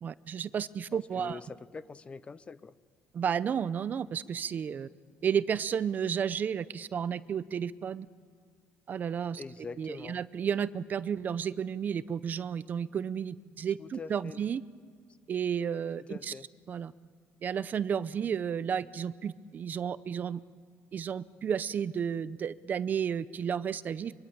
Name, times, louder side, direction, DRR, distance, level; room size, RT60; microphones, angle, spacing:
voice 1, 0.0-1.4 3.1-4.9 5.2-8.1 8.9-9.4 9.8-14.6 15.3-16.3 16.7-16.9 17.4-20.4 20.9-24.1, right 7 dB, 40° right, 16 dB, 0.7 m, -32 dB
voice 2, 0.9-2.7 9.4-10.2 13.8-14.4 16.1-16.5, left 4 dB, 25° left, 15 dB, 0.7 m, -44 dB
24.5 x 24.0 x 8.7 m, 2.1 s
cardioid pair, 140°, 5 cm